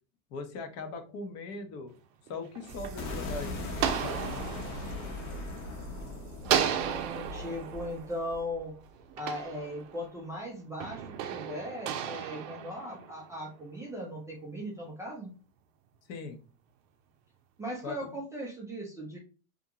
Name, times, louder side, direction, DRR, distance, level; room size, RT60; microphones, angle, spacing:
voice 1, 0.3-1.9 2.3-4.3 16.1-16.4 17.8-18.1, left 3 dB, 35° left, 6 dB, 0.6 m, -40 dB
sound 1, 2.3-6.0 6.4-10.2 10.8-13.5, right 9 dB, 65° right, 0.6 m, -35 dB
sound 2, 2.7-8.4, equal, 30° right, 0.8 m, -45 dB
sound 3, 3.0-9.0, left 3 dB, 65° left, 0.9 m, -40 dB
voice 2, 6.6-8.7 9.2-15.3 17.6-19.2, equal, 10° right, -3 dB, 0.3 m, -38 dB
2.5 x 2.2 x 2.8 m, 0.34 s
supercardioid pair, 115°, 43 cm